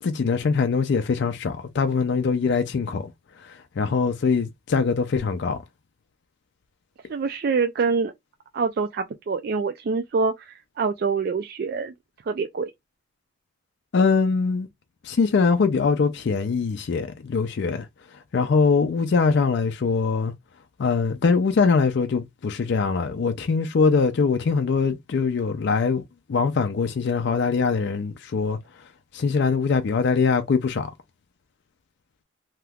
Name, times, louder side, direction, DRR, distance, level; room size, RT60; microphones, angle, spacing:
voice 1, 0.0-3.1 3.4-5.6 13.9-14.7 15.0-20.3 20.8-26.0 26.3-28.6 29.1-30.9, left 5 dB, 55° left, 0.4 m, -22 dB
voice 2, 7.1-8.1 8.5-11.9 12.3-12.7, right 4 dB, 50° right, 0.3 m, -25 dB
2.8 x 2.3 x 3.4 m
head